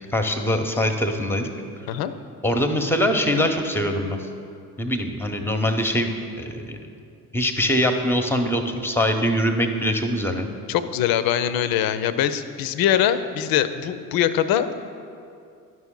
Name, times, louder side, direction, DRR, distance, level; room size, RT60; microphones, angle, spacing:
voice 1, 0.1-1.5 2.4-4.2 4.8-6.1 6.4-6.8 7.3-10.5, equal, 5° left, 5 dB, 0.9 m, -23 dB
voice 2, 10.7-14.7, left 10 dB, 55° left, 12 dB, 0.6 m, -22 dB
11.0 x 6.0 x 3.8 m, 2.5 s
hypercardioid pair, 60°, 43 cm